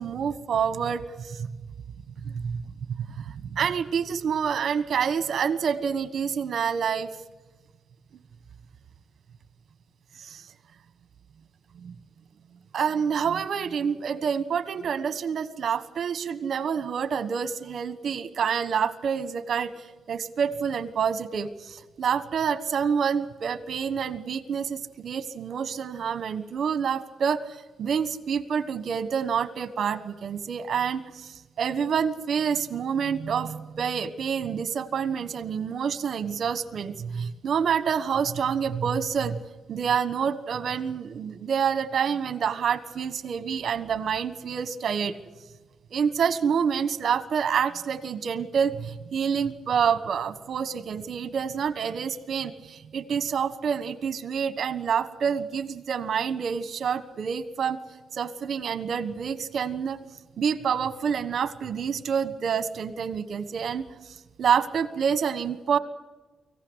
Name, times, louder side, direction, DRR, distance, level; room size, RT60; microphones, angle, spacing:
voice 1, 0.0-1.5 2.2-2.6 3.0-7.1 10.2-10.5 11.7-11.9 12.7-39.4 39.7-45.2 45.9-57.8 58.1-60.0 60.4-65.8, right 7 dB, 50° right, 13 dB, 1.4 m, -27 dB
24.5 x 15.5 x 8.1 m, 1.2 s
wide cardioid pair, 170°, 0 cm